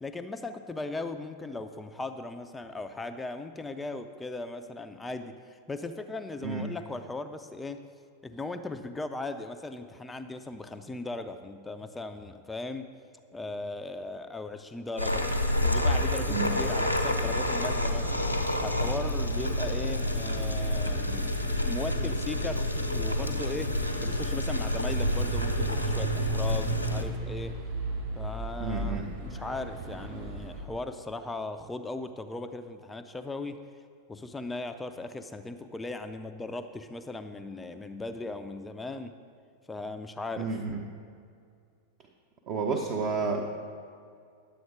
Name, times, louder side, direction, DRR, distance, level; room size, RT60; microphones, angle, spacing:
voice 1, 0.0-7.8 8.2-12.9 13.3-15.3 15.6-18.2 18.6-27.6 28.2-33.6 34.1-39.1 39.7-40.5, left 2 dB, 10° left, 8 dB, 0.5 m, -38 dB
sound 1, 15.0-27.0, left 1 dB, 90° left, 0.9 m, -28 dB
sound 2, 24.9-30.6, right 3 dB, 55° right, 2.8 m, -35 dB
voice 2, 28.6-29.1 40.4-40.8 42.5-43.4, right 5 dB, 40° right, 1 dB, 0.9 m, -30 dB
11.0 x 7.7 x 5.0 m, 2.3 s
figure-of-eight pair, 90°, 0 cm